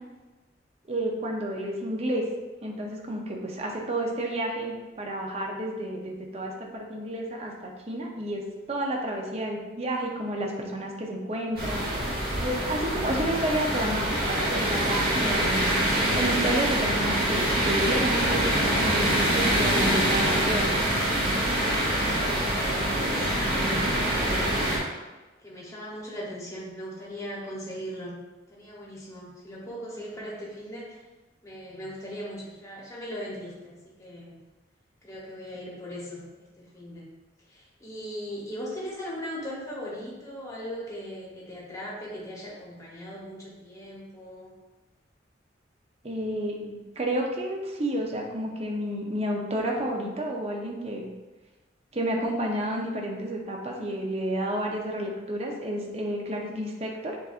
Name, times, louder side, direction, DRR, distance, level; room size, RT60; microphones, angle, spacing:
voice 1, 0.9-2.2 2.6-8.4 8.7-11.8 12.4-15.8 16.1-20.7 46.0-51.1 51.9-57.2, right 1 dB, 35° right, 0 dB, 0.6 m, -31 dB
sound 1, 11.6-24.8, right 1 dB, 55° right, 1.1 m, -25 dB
voice 2, 22.2-24.9 25.4-28.2 28.5-31.0 31.4-34.4 35.0-37.1 37.4-44.5, equal, 15° left, -5 dB, 0.9 m, -39 dB
7.0 x 2.5 x 2.4 m, 1.2 s
head